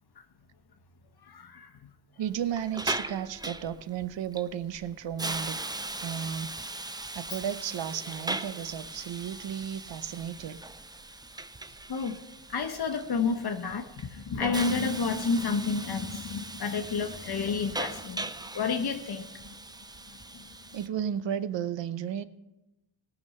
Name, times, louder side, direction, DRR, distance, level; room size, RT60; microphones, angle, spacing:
voice 1, 1.2-1.7 11.9-12.2 12.5-18.2 18.5-19.3, left 5 dB, 55° left, 5 dB, 1.0 m, -30 dB
voice 2, 2.2-5.6 6.0-6.5 7.1-10.6 20.7-22.2, right 9 dB, 70° right, 14 dB, 0.8 m, -33 dB
Hiss, 2.3-20.9, right 2 dB, 10° right, 0.4 m, -39 dB
18.0 x 6.2 x 5.4 m, 0.94 s
wide cardioid pair, 100°, 46 cm